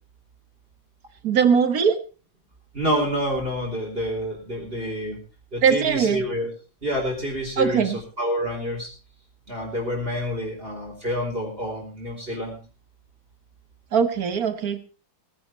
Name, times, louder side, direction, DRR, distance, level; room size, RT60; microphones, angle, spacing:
voice 1, 1.2-2.0 5.6-6.2 7.6-8.0 13.9-14.8, right 6 dB, 55° right, 11 dB, 1.6 m, -20 dB
voice 2, 2.7-5.2 5.5-6.5 6.8-8.9 9.5-12.6, equal, 30° right, -1 dB, 3.9 m, -28 dB
18.0 x 10.0 x 4.5 m, 0.34 s
omnidirectional pair, 2.1 m